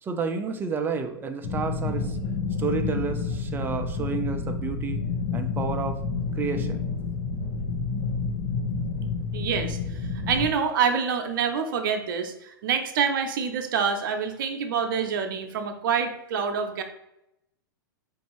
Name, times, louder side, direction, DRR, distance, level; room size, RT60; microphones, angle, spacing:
voice 1, 0.0-2.2 2.5-5.0 5.3-6.0 6.3-6.8, right 5 dB, 15° right, 7 dB, 0.4 m, -30 dB
sound 1, 1.4-10.5, left 5 dB, 50° left, 0.9 m, -29 dB
voice 2, 9.3-16.8, right 6 dB, 65° right, 6 dB, 0.7 m, -27 dB
4.4 x 2.6 x 3.0 m, 0.84 s
hypercardioid pair, 115°, 12 cm